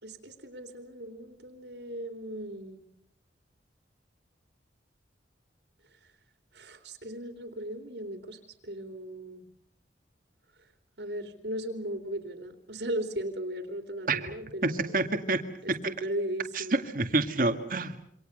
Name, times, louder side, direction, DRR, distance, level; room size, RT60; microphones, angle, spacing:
voice 1, 0.0-2.8 6.0-6.1 6.5-9.4 11.0-15.1 15.6-16.8, right 1 dB, 70° right, 6 dB, 3.3 m, -37 dB
voice 2, 14.6-15.4 16.6-18.0, right 2 dB, 50° right, 7 dB, 2.1 m, -27 dB
27.5 x 25.5 x 6.7 m, 0.71 s
head